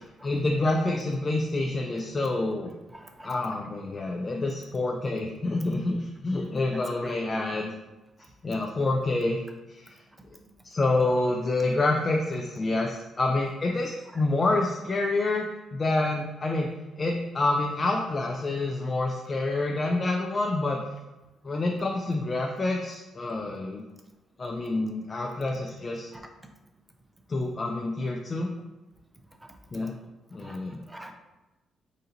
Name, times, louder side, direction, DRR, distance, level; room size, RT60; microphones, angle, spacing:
voice 1, 0.2-2.7 3.2-7.7 8.4-9.4 9.7-10.0 10.6-15.4 15.7-16.7 17.0-20.8 21.4-23.8 24.4-26.1 27.3-28.5 29.7-29.9 30.3-30.8, left 2 dB, 35° left, 1 dB, 0.4 m, -27 dB
voice 2, 2.9-3.3 6.7-7.2 14.1-14.2 26.1-26.2 29.4-30.0 30.4-31.1, right 1 dB, 15° right, 4 dB, 0.6 m, -46 dB
4.2 x 2.7 x 3.8 m, 1.0 s
cardioid pair, 90°, 0 cm